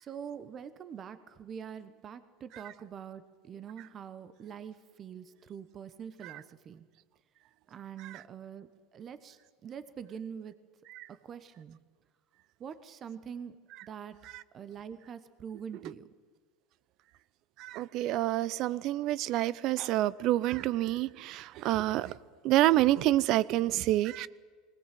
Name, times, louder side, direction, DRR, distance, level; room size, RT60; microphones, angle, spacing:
voice 1, 0.0-6.8 7.7-10.6 11.1-11.8 12.6-14.2 14.5-16.1, right 7 dB, 35° right, 12 dB, 1.0 m, -44 dB
voice 2, 17.6-22.2 22.4-24.3, right 15 dB, 55° right, 20 dB, 0.6 m, -28 dB
20.0 x 18.0 x 7.7 m, 1.5 s
supercardioid pair, 110°, 0 cm